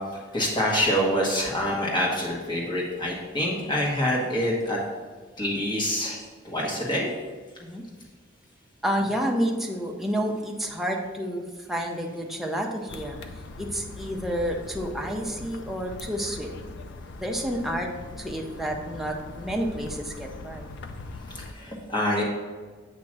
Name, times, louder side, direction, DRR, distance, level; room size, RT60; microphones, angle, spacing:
voice 1, 0.3-4.8 5.4-6.2 6.4-7.1 21.3-22.2, equal, 25° left, -3 dB, 1.4 m, -26 dB
voice 2, 8.8-13.3 13.6-16.5 17.2-17.9 18.2-20.7, equal, ahead, 0 dB, 0.7 m, -30 dB
sound 1, 12.9-21.5, left 3 dB, 65° left, 0.5 m, -41 dB
8.7 x 3.0 x 6.0 m, 1.4 s
head